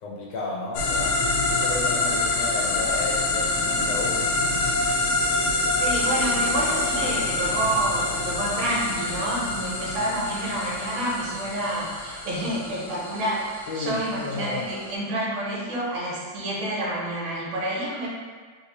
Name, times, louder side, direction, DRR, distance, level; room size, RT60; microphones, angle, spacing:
voice 1, 0.0-5.0 13.7-14.7, left 3 dB, 70° left, -4 dB, 1.2 m, -33 dB
sound 1, 0.7-14.9, left 2 dB, 85° left, 0.8 m, -26 dB
voice 2, 5.8-18.1, right 1 dB, 75° right, -6 dB, 1.6 m, -28 dB
3.4 x 2.6 x 2.9 m, 1.5 s
omnidirectional pair, 2.2 m